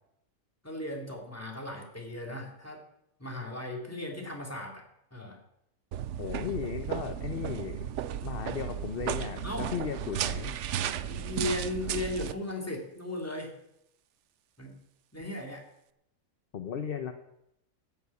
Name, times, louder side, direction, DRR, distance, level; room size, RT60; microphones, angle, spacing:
voice 1, 0.6-2.8 3.2-4.8 5.1-5.4 9.4-9.7 10.9-13.5 14.6-14.8 15.1-15.6, left 2 dB, 10° left, 0 dB, 2.6 m, -37 dB
sound 1, 5.9-12.3, right 10 dB, 65° right, 0.9 m, -34 dB
voice 2, 6.2-7.9 8.2-10.5 16.5-17.1, left 8 dB, 50° left, 8 dB, 0.9 m, -36 dB
13.5 x 7.0 x 8.3 m, 0.80 s
omnidirectional pair, 1.4 m